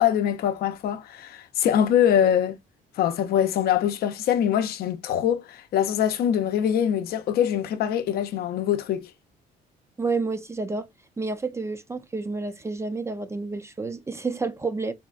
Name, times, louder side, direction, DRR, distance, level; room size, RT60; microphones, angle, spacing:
voice 1, 0.0-2.6 3.0-9.0, left 9 dB, 65° left, 0.6 m, -23 dB
voice 2, 10.0-10.9 11.2-14.9, right 3 dB, 15° right, 0.4 m, -29 dB
4.2 x 2.1 x 2.4 m
cardioid pair, 110°, 17 cm